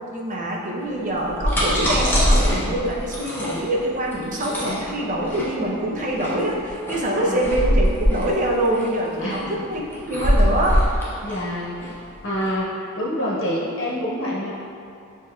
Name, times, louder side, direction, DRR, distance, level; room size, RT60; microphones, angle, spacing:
voice 1, 0.1-11.1, right 1 dB, 35° right, -3 dB, 0.5 m, -25 dB
sound 1, 1.1-12.5, equal, 10° left, 0.6 m, -23 dB
voice 2, 7.1-7.5 9.2-9.5 11.2-11.8 12.2-14.5, equal, 55° left, -6 dB, 0.9 m, -27 dB
6.5 x 2.9 x 2.3 m, 2.5 s
head